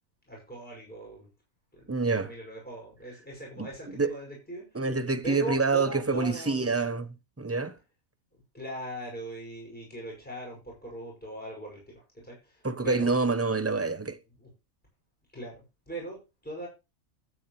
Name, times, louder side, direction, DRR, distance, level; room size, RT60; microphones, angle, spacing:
voice 1, 0.3-1.3 1.7-4.9 5.2-6.8 8.3-13.1 14.4-14.5 15.3-16.7, right 1 dB, 5° left, 5.8 m, -40 dB
voice 2, 1.9-2.3 3.6-3.7 4.0-4.1 4.7-7.8 12.6-14.2, right 4 dB, 15° right, 0.6 m, -27 dB
12.0 x 9.4 x 3.1 m
omnidirectional pair, 1.5 m